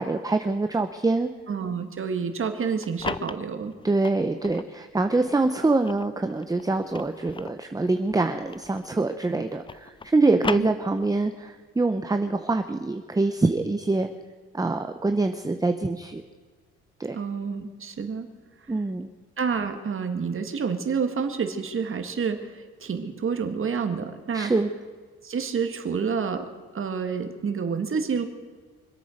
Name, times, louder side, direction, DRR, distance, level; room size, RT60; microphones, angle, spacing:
voice 1, 0.0-1.3 3.8-14.1 14.5-16.2 17.0-17.2 18.7-19.1 24.3-24.7, right 3 dB, 10° right, 7 dB, 0.8 m, -25 dB
voice 2, 1.5-3.8 10.4-10.7 17.1-18.3 19.4-24.5 25.2-28.2, right 6 dB, 45° right, 7 dB, 1.9 m, -29 dB
sound 1, 2.6-4.7 5.3-9.0 9.3-11.3, left 4 dB, 15° left, 0.4 m, -37 dB
25.5 x 8.6 x 6.5 m, 1.5 s
cardioid pair, 90°, 30 cm